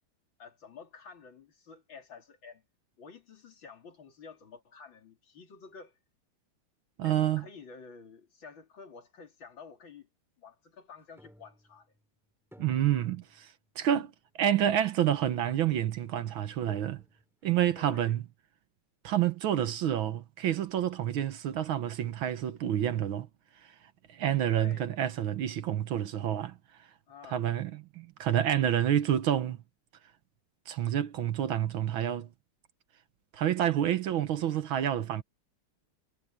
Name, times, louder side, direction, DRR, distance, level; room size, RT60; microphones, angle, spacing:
voice 1, 0.4-2.6 3.0-6.0 7.0-10.1 10.4-11.9 17.8-18.2 24.5-24.9 27.1-27.4, left 5 dB, 60° left, 3.5 m, -50 dB
voice 2, 7.0-7.4 12.6-14.1 14.4-17.0 17.4-18.2 19.0-23.3 23.6-23.7 24.1-26.6 27.3-29.6 30.7-32.3 33.3-35.2, right 10 dB, 70° right, 1.7 m, -28 dB
sound 1, 11.2-12.1 12.5-13.7 14.1-14.2 15.1-15.2 16.3-16.4 16.7-17.5, equal, ahead, 3.8 m, -57 dB
omnidirectional pair, 2.4 m